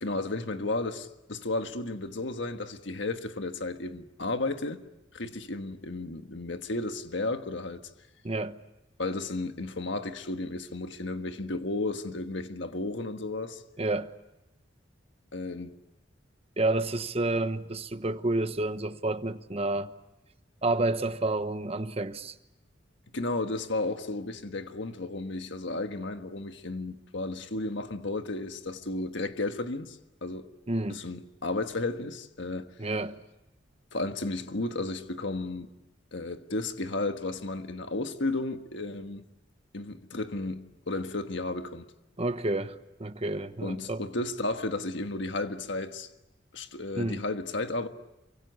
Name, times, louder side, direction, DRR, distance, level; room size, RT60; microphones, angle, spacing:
voice 1, 0.0-4.8 5.1-7.8 9.0-13.6 15.3-15.7 23.1-30.5 30.9-32.7 33.9-35.7 36.1-39.2 39.7-41.8 43.6-46.1 46.5-47.9, left 2 dB, 65° left, 1.5 m, -33 dB
voice 2, 8.2-8.6 13.8-14.1 16.6-19.9 20.6-22.3 30.7-31.1 32.8-33.2 42.2-44.0 46.9-47.2, right 2 dB, 30° right, 1.1 m, -30 dB
28.0 x 24.5 x 8.2 m
head